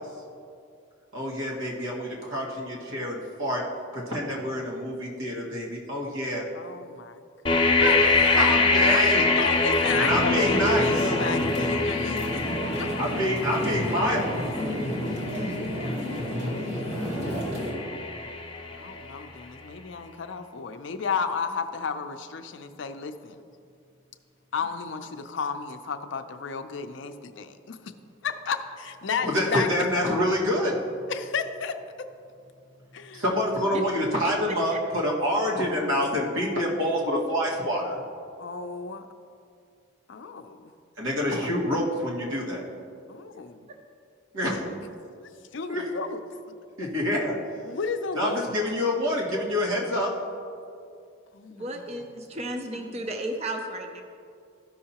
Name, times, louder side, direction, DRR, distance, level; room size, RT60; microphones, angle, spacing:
voice 1, 1.1-3.6 3.9-6.4 7.8-9.3 10.0-11.1 13.0-14.3 16.9-17.2 29.2-30.8 33.1-37.9 41.0-42.6 44.3-44.6 45.7-45.9 46.8-47.4 48.1-50.1, equal, 85° right, -3 dB, 1.8 m, -27 dB
voice 2, 6.5-7.2 7.5-7.9 8.7-12.4 12.7-12.9 15.5-16.7 17.2-17.3 18.7-23.4 24.5-27.9 28.2-29.7 31.1-32.1 32.9-33.2 35.9-36.0 38.4-39.1 40.1-40.7 43.1-43.7 44.6-44.7 45.5-46.2 47.6-48.4 51.3-51.8 52.7-53.0, left 5 dB, 65° left, 8 dB, 0.5 m, -33 dB
sound 1, 7.5-19.3, left 3 dB, 25° left, 0.7 m, -25 dB
sound 2, 9.8-17.7, equal, 65° right, 2.1 m, -31 dB
voice 3, 51.5-54.0, right 1 dB, 30° right, 4 dB, 0.5 m, -33 dB
13.5 x 5.6 x 2.9 m, 2.4 s
head